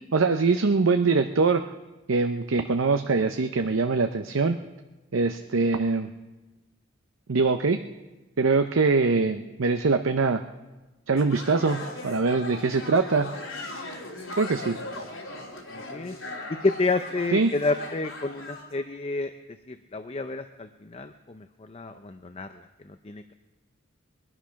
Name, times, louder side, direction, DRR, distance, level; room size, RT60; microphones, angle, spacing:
voice 1, 0.1-1.6 2.1-4.6 5.1-6.1 7.3-7.8 8.4-10.4 11.1-13.3 14.4-14.8 17.3-17.5, right 4 dB, 75° right, 7 dB, 0.7 m, -23 dB
sound 1, 11.2-18.7, left 2 dB, 75° left, 3.1 m, -38 dB
voice 2, 15.7-16.2 16.5-19.3 19.7-22.6 22.9-23.3, left 3 dB, 30° left, 8 dB, 0.5 m, -30 dB
22.0 x 11.0 x 5.8 m, 1.1 s
head